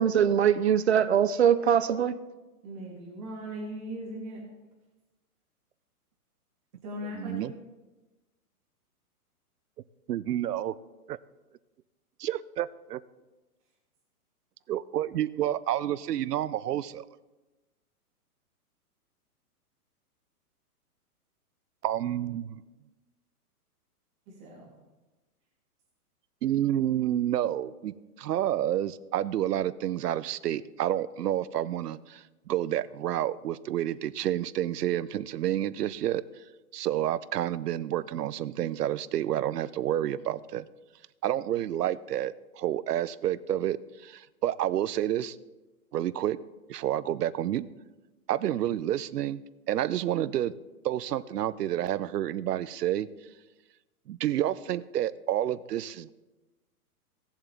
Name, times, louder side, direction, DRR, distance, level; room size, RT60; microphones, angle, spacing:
voice 1, 0.0-2.2, right 8 dB, 45° right, 0.5 m, -22 dB
voice 2, 2.6-4.4 6.8-7.5 24.3-24.7, equal, 20° right, 2.8 m, -39 dB
voice 3, 7.1-7.5 10.1-10.7 11.1-11.2 12.2-13.0 14.7-17.0 21.8-22.6 26.4-36.2 36.7-40.7 41.2-45.4 45.9-46.4 46.7-47.7 48.3-49.4 49.7-50.5 50.8-53.1 54.1-56.1, right 12 dB, 90° right, 0.7 m, -29 dB
18.0 x 7.3 x 3.4 m
hypercardioid pair, 175°, 46 cm